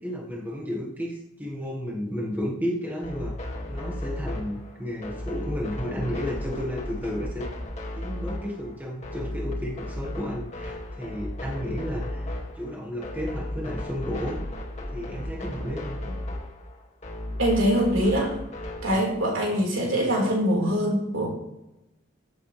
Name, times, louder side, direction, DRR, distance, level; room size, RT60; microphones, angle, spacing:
voice 1, 0.0-7.5 7.9-12.3 12.6-14.4 14.9-15.9, equal, 10° right, -1 dB, 1.4 m, -32 dB
sound 1, 3.0-19.0, left 1 dB, 35° left, 2.0 m, -35 dB
voice 2, 17.4-18.4 18.8-21.3, equal, 85° right, -2 dB, 4.3 m, -23 dB
15.0 x 7.9 x 3.3 m, 0.92 s
head